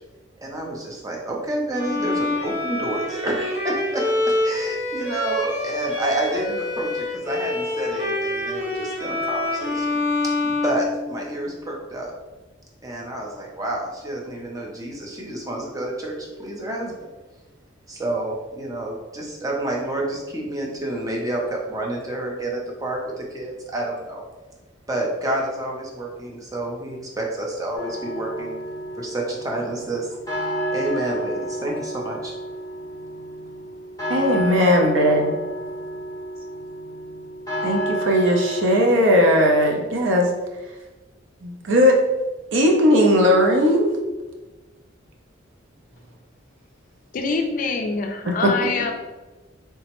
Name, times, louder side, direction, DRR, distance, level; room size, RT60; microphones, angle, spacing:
voice 1, 0.4-12.1 12.8-17.1 17.9-24.2 24.9-28.5 29.0-30.2 30.7-32.3, right 1 dB, 20° right, -2 dB, 0.5 m, -29 dB
Bowed string instrument, 1.7-11.5, left 2 dB, 45° right, 1.2 m, -26 dB
sound 1, 27.8-39.0, right 1 dB, 20° left, 0.7 m, -30 dB
voice 2, 34.1-35.4 37.6-40.3 41.4-42.0 42.5-43.9 48.3-48.4 48.6-48.7, equal, 70° right, 2 dB, 0.5 m, -18 dB
voice 3, 47.1-48.9, left 4 dB, 45° left, 5 dB, 0.3 m, -25 dB
3.4 x 2.0 x 2.9 m, 1.2 s
head